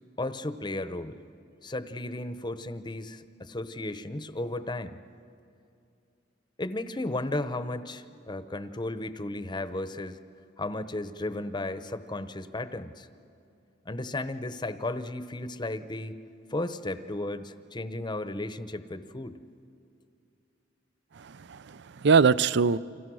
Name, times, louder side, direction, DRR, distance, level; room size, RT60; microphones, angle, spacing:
voice 1, 0.2-1.2 1.6-5.0 6.6-10.2 10.6-13.1 13.9-16.2 16.5-19.4, left 2 dB, 25° left, 12 dB, 0.8 m, -34 dB
voice 2, 21.2-22.8, right 5 dB, 60° right, 18 dB, 0.5 m, -23 dB
29.5 x 26.5 x 6.3 m, 2.5 s
head